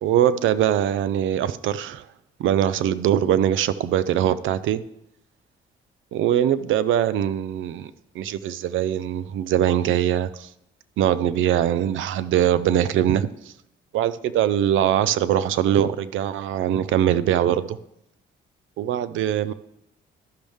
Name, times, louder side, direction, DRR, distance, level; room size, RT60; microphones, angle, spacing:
voice 1, 0.0-2.1 2.4-4.8 6.1-10.5 11.0-13.5 13.9-17.8 18.8-19.5, right 10 dB, 80° right, 0.5 m, -22 dB
13.5 x 6.2 x 3.5 m
cardioid pair, 90°, 20 cm